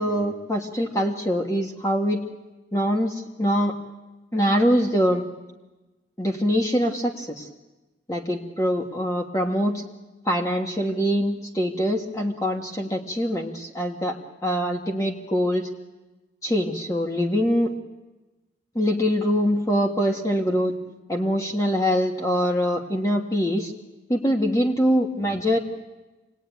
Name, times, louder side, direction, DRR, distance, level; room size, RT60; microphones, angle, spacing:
voice 1, 0.0-2.3 2.7-3.7 4.3-5.3 6.2-7.5 8.1-9.8 10.2-15.7 16.4-17.7 18.7-20.7 21.1-23.7 24.1-25.6, equal, 20° left, 1 dB, 1.6 m, -23 dB
27.0 x 19.0 x 9.3 m, 1.1 s
head